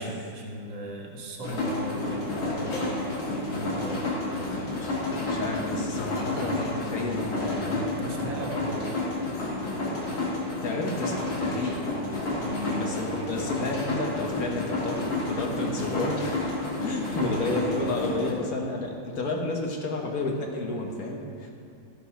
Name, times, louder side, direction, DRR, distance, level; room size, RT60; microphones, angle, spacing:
voice 1, 0.0-4.6 8.0-9.0 12.4-12.9 17.1-17.5, right 1 dB, 65° right, -1 dB, 2.0 m, -37 dB
sound 1, 1.4-18.3, left 2 dB, 75° left, 2.5 m, -30 dB
voice 2, 4.8-8.1 10.6-11.9 12.3-12.4 12.7-16.5 16.8-21.5, left 2 dB, 55° left, 1 dB, 1.4 m, -31 dB
13.0 x 5.6 x 5.6 m, 2.4 s
omnidirectional pair, 2.2 m